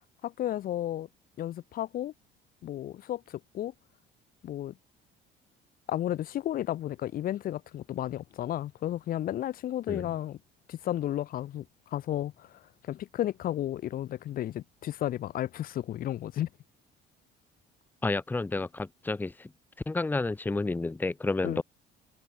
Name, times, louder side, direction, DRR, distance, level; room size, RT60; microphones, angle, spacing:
voice 1, 0.2-1.1 1.4-2.1 2.6-3.7 4.4-4.7 5.9-10.4 10.7-11.6 11.9-12.5 12.9-16.5 21.4-21.6, left 12 dB, 50° left, 1.7 m, -33 dB
voice 2, 18.0-19.5 19.9-21.6, left 3 dB, 10° left, 1.6 m, -30 dB
cardioid pair, 175°, 19 cm